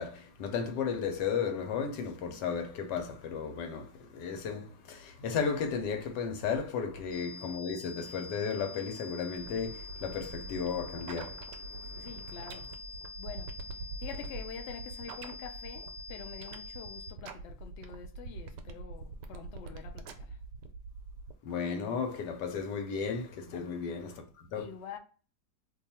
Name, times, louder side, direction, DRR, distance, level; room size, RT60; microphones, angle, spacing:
voice 1, 0.0-12.3 21.4-24.6, left 6 dB, 85° left, 1.3 m, -34 dB
sound 1, 7.1-17.1, left 4 dB, 45° left, 0.9 m, -46 dB
sound 2, 9.4-21.3, right 3 dB, 80° right, 1.2 m, -44 dB
voice 2, 11.9-12.8 13.2-20.4 23.5-23.7 24.5-25.0, left 7 dB, 70° left, 0.6 m, -46 dB
2.8 x 2.3 x 4.1 m
omnidirectional pair, 1.8 m